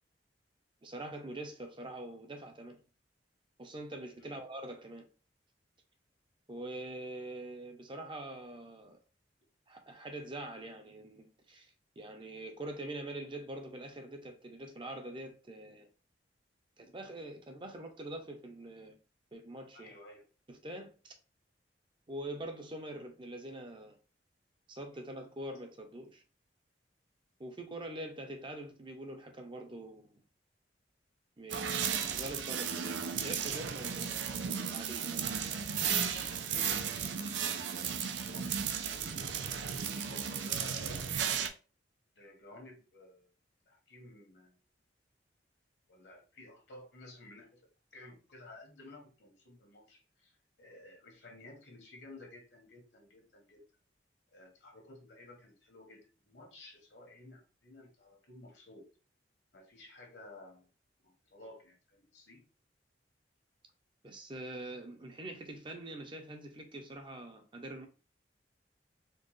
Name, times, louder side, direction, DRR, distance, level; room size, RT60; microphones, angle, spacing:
voice 1, 0.8-2.8 3.6-5.1 6.5-9.0 9.7-15.9 16.8-19.0 19.3-20.0 20.5-21.1 22.1-24.0 24.7-26.2 27.4-30.2 31.4-35.1 64.0-67.9, right 1 dB, 30° right, 0.6 m, -44 dB
voice 2, 19.7-20.2 36.1-39.3 39.8-41.0 42.1-43.3 43.7-44.5 45.9-47.6 47.9-50.3 50.6-53.6 54.3-58.9 59.5-60.7 61.0-62.4, left 2 dB, 70° left, 1.3 m, -54 dB
sound 1, 31.5-41.5, right 7 dB, 90° right, 0.5 m, -35 dB
4.4 x 2.3 x 3.1 m
head